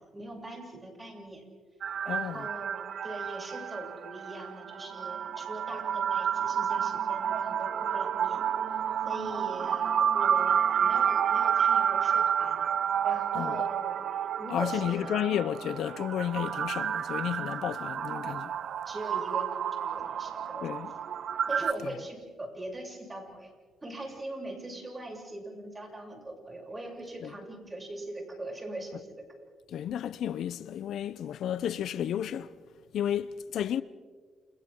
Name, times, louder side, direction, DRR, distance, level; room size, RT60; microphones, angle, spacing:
voice 1, 0.1-1.4 2.0-8.4 9.1-12.6 13.0-15.2 18.9-20.8 21.5-23.5 23.8-29.2, right 1 dB, 20° right, 7.6 m, -41 dB
sound 1, 1.8-21.7, right 8 dB, 60° right, 0.8 m, -30 dB
voice 2, 2.1-2.5 13.3-13.7 14.5-18.5 20.6-20.9 21.8-21.9 27.2-27.3 29.7-32.5 32.9-33.8, left 10 dB, 70° left, 0.7 m, -32 dB
30.0 x 29.5 x 3.8 m
cardioid pair, 90°, 0 cm